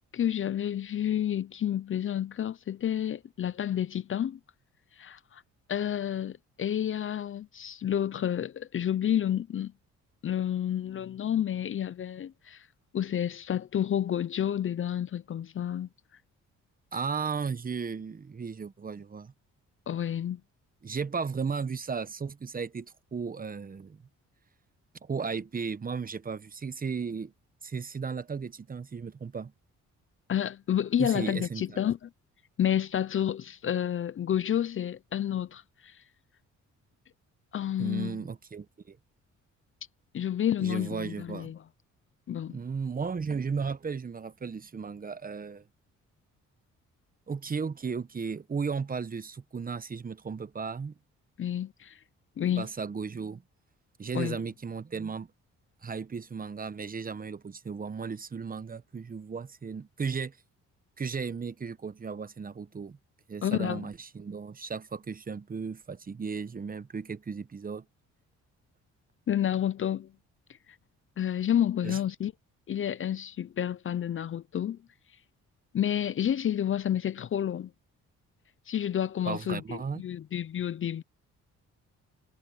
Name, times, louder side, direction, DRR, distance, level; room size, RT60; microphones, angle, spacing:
voice 1, 0.1-4.4 5.0-5.4 5.7-9.7 10.2-12.7 12.9-15.9 19.9-20.4 30.3-32.1 32.6-36.0 37.5-38.3 40.1-41.6 42.3-42.6 51.4-52.0 52.4-52.7 54.1-54.4 63.4-63.9 69.3-70.1 71.2-72.3 72.7-74.8 75.7-77.7 78.7-81.0, left 10 dB, 45° left, 0.6 m, -30 dB
voice 2, 16.9-19.3 20.8-24.0 25.0-27.3 27.6-29.5 31.0-31.8 37.8-39.0 40.6-41.5 42.5-45.6 47.3-50.9 52.6-53.4 54.0-55.3 55.8-60.4 61.0-63.0 63.3-67.8 71.8-72.0 79.3-80.0, right 5 dB, 30° right, 1.1 m, -35 dB
cardioid pair, 90°, 30 cm